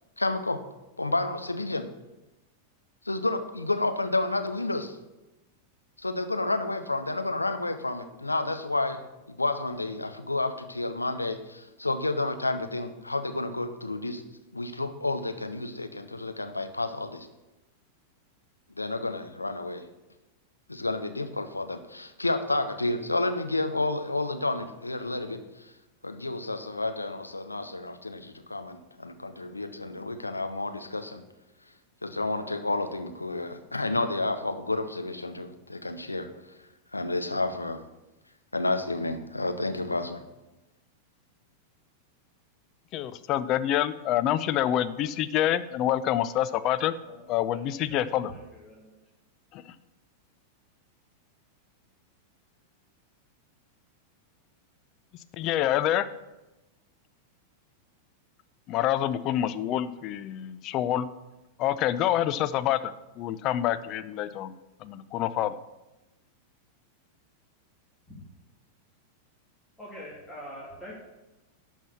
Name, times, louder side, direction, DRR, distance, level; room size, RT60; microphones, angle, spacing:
voice 1, 0.2-0.6 1.0-1.9 3.0-5.0 6.0-14.2 14.5-17.3 18.8-19.8 20.7-25.7 26.0-31.2 32.0-36.3 36.9-37.8 38.5-40.2, left 2 dB, 85° left, 8 dB, 0.8 m, -30 dB
voice 2, 42.9-46.9 47.3-48.3 49.5-49.6 55.3-56.1 58.7-61.1 61.6-62.9 63.2-64.5 64.8-65.5, left 12 dB, 40° left, 13 dB, 0.6 m, -27 dB
voice 3, 47.9-49.0 69.8-70.9, equal, 5° left, -7 dB, 2.8 m, -44 dB
11.5 x 4.6 x 7.1 m, 1.0 s
figure-of-eight pair, 90°, 0 cm